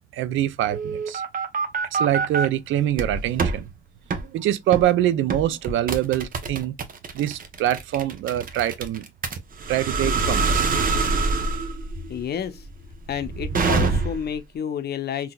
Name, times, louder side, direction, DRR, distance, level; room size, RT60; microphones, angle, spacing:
voice 1, 0.1-1.2 1.9-3.7 4.3-6.8 7.1-9.1 9.7-10.8, right 12 dB, 80° right, 0.5 m, -24 dB
sound 1, 0.7-2.5 2.9-3.6 4.1-4.3 4.7-4.9 5.3-14.4, right 4 dB, 45° right, 0.8 m, -25 dB
voice 2, 12.1-12.6 13.1-15.3, left 8 dB, 55° left, 0.7 m, -30 dB
3.7 x 2.8 x 2.3 m
cardioid pair, 90°, 20 cm